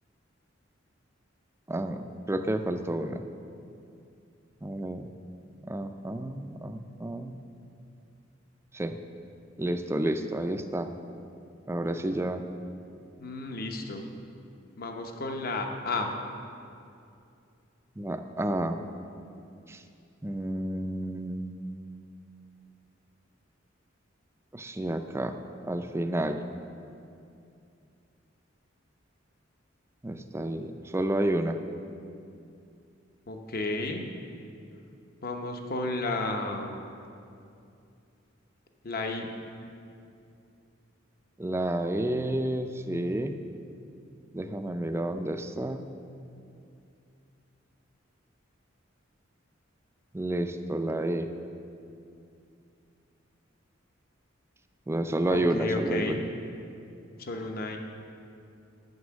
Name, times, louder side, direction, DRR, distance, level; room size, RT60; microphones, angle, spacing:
voice 1, 1.7-3.2 4.6-5.1 5.7-7.3 8.7-9.0 9.6-10.9 11.7-12.4 18.0-18.8 19.7-19.8 20.2-21.7 24.5-25.3 25.6-26.4 30.0-31.6 41.4-43.4 44.3-45.9 50.1-51.3 54.9-56.2, right 1 dB, 15° right, 7 dB, 0.4 m, -30 dB
voice 2, 13.2-14.1 14.8-16.1 33.3-34.0 35.2-36.8 38.8-39.3 55.3-56.2 57.2-57.8, left 2 dB, 50° left, 3 dB, 0.9 m, -32 dB
9.4 x 6.1 x 7.4 m, 2.5 s
head